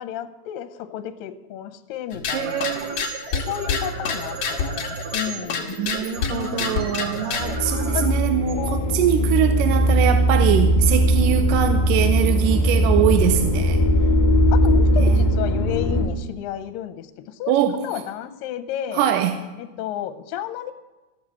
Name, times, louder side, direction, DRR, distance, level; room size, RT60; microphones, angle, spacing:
voice 1, 0.0-2.7 3.3-5.7 6.3-7.0 7.9-8.1 8.6-9.3 14.5-17.6 17.8-19.1 19.6-20.7, left 10 dB, 80° left, 2.4 m, -32 dB
sound 1, 2.1-7.6, left 5 dB, 55° left, 1.6 m, -28 dB
sound 2, 2.2-9.3, right 2 dB, 55° right, 3.0 m, -35 dB
voice 2, 2.3-3.1 5.8-13.8 15.0-15.1 17.5-17.8 19.0-19.3, right 10 dB, 80° right, 2.2 m, -23 dB
sound 3, 7.4-16.1, equal, 25° left, 0.9 m, -19 dB
15.0 x 6.4 x 8.4 m
omnidirectional pair, 4.0 m